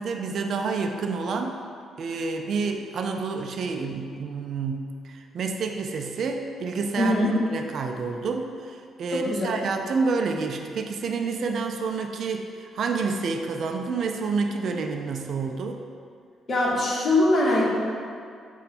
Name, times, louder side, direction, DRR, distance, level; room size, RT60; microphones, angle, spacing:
voice 1, 0.0-1.6 2.0-15.8, right 4 dB, 60° right, 4 dB, 0.3 m, -29 dB
voice 2, 7.0-7.3 9.1-9.5 16.5-17.7, left 1 dB, 40° left, -4 dB, 1.1 m, -22 dB
5.3 x 2.2 x 4.1 m, 2.2 s
cardioid pair, 90°, 0 cm